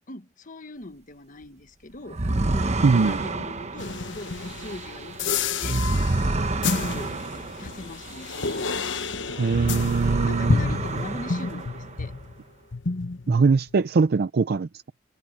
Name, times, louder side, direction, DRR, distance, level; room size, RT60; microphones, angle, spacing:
voice 1, 0.1-2.2 2.5-5.8 6.7-7.2 7.6-8.7 10.2-12.2, left 2 dB, 45° left, 1.3 m, -40 dB
sound 1, 2.1-9.0 9.4-12.1, right 2 dB, 35° right, 1.0 m, -29 dB
voice 2, 2.8-3.2 9.4-10.6 13.3-14.7, right 4 dB, 55° right, 0.5 m, -21 dB
sound 2, 3.8-12.4 12.7-13.8, left 4 dB, 70° left, 1.0 m, -30 dB
head